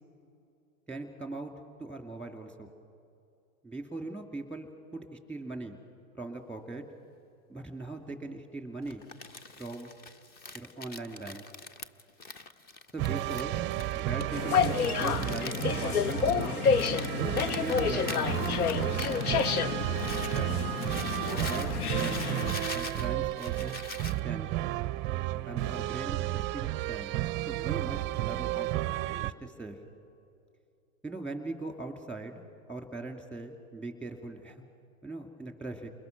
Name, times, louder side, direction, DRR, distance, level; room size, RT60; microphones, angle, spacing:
voice 1, 0.9-1.5 1.8-2.7 3.6-5.8 6.1-6.8 7.5-9.1 9.6-9.9 10.5-11.4 12.9-13.6 13.9-16.7 17.1-17.3 17.6-18.9 20.3-20.5 21.2-22.3 22.7-23.8 24.2-24.5 25.4-27.1 27.5-28.8 29.1-29.8 31.0-32.4 32.7-34.6 35.0-35.9, right 2 dB, 5° left, 5 dB, 2.6 m, -40 dB
Crumpling crinkling, 8.9-20.4 20.8-24.2, left 3 dB, 20° left, 0.8 m, -43 dB
sound 1, 13.0-29.3, right 15 dB, 25° right, 0.5 m, -32 dB
sound 2, 14.3-22.5, left 7 dB, 90° left, 0.8 m, -29 dB
29.5 x 21.5 x 6.1 m, 2.6 s
hypercardioid pair, 120°, 43 cm